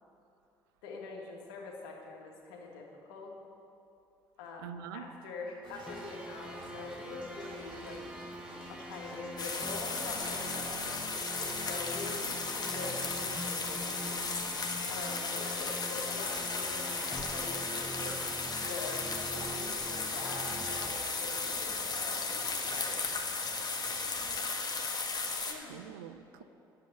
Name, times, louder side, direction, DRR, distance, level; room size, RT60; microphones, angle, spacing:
voice 1, 0.8-3.4 4.4-8.0 8.7-10.9 11.4-14.1 14.9-18.2 18.6-23.0 25.4-25.7, left 4 dB, 70° left, 0 dB, 1.8 m, -44 dB
voice 2, 4.6-5.0 24.4-24.9 25.7-26.4, right 9 dB, 75° right, 10 dB, 0.5 m, -46 dB
sound 1, 5.6-24.4, right 2 dB, 40° right, 3.0 m, -50 dB
sound 2, 5.9-20.9, right 1 dB, 5° right, 1.3 m, -45 dB
sound 3, 9.4-25.5, left 4 dB, 35° left, 1.6 m, -35 dB
10.0 x 7.6 x 9.0 m, 2.7 s
figure-of-eight pair, 50°, 12 cm